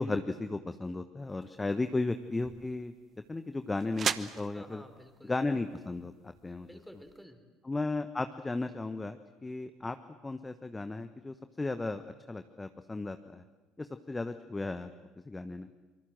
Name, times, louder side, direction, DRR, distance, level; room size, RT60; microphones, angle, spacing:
voice 1, 0.0-2.9 3.3-4.8 5.2-6.7 7.6-10.0 10.2-12.0 12.3-13.4 13.8-14.9 15.3-15.7, left 2 dB, 15° left, 9 dB, 1.1 m, -35 dB
sound 1, 1.3-7.2, right 7 dB, 40° right, 1.0 m, -41 dB
voice 2, 1.6-2.0 4.5-5.3 6.6-7.4, equal, ahead, 7 dB, 3.9 m, -52 dB
26.0 x 24.0 x 7.7 m, 1.2 s
figure-of-eight pair, 60°, 0 cm